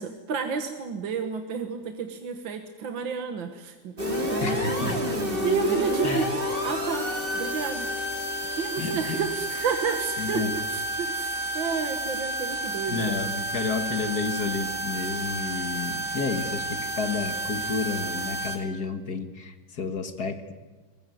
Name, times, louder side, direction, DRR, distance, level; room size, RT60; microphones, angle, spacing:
voice 1, 0.0-6.3 6.6-7.9 8.5-13.3, right 6 dB, 70° right, 6 dB, 2.1 m, -31 dB
sound 1, 4.0-18.6, equal, 25° right, 3.6 m, -30 dB
voice 2, 4.4-5.2 6.0-6.3 8.8-9.2 10.2-10.5 12.9-20.5, left 4 dB, 50° left, 8 dB, 2.2 m, -31 dB
22.5 x 20.5 x 9.3 m, 1.3 s
omnidirectional pair, 2.2 m